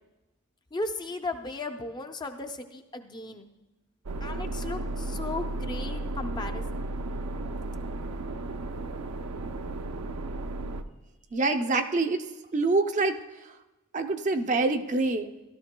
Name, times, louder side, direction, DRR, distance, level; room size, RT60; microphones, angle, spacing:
voice 1, 0.7-3.5 4.2-6.8, left 2 dB, 20° left, 6 dB, 0.5 m, -36 dB
sound 1, 4.1-10.8, right 2 dB, 80° right, 0.6 m, -34 dB
voice 2, 11.3-12.3 12.5-13.2 13.9-15.3, right 3 dB, 35° right, 6 dB, 0.5 m, -25 dB
16.0 x 12.0 x 2.2 m, 1.0 s
head